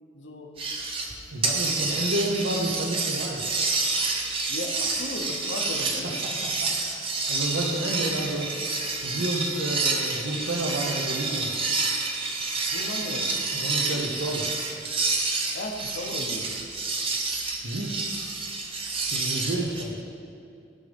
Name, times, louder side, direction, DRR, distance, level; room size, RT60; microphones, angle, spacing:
voice 1, 0.1-0.5 1.8-2.1 4.5-6.2 12.5-13.3 13.8-14.1 15.5-16.5, left 1 dB, 75° left, 2 dB, 0.9 m, -36 dB
sound 1, 0.6-1.1 1.4-19.8, right 3 dB, 30° right, 0.7 m, -28 dB
voice 2, 1.3-3.4 6.0-6.7 7.3-8.5 9.0-11.5 13.5-14.5 17.6-17.9 19.1-20.0, right 1 dB, 85° right, -2 dB, 0.9 m, -30 dB
14.0 x 5.3 x 3.4 m, 2.5 s
head